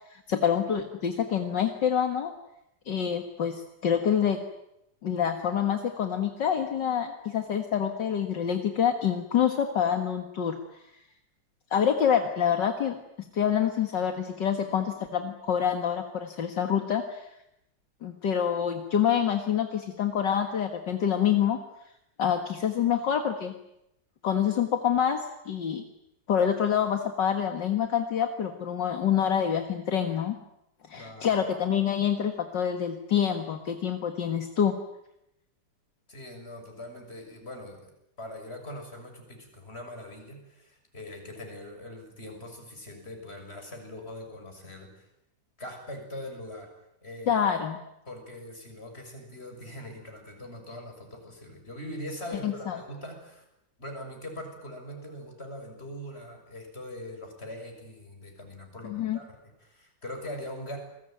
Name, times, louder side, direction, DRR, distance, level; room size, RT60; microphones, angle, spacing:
voice 1, 0.1-2.3 2.9-4.4 5.0-10.5 11.7-13.0 13.3-17.3 18.0-21.6 22.2-23.5 24.2-25.2 25.5-25.8 26.3-30.3 30.9-34.7 47.3-47.8 52.4-52.8 58.8-59.2, left 8 dB, 70° left, 5 dB, 2.3 m, -26 dB
voice 2, 30.9-31.4 36.1-37.9 38.2-45.0 45.6-46.7 47.0-47.5 48.1-53.4 53.8-60.8, left 1 dB, 30° left, 3 dB, 7.0 m, -42 dB
29.0 x 21.0 x 9.2 m, 0.83 s
omnidirectional pair, 2.0 m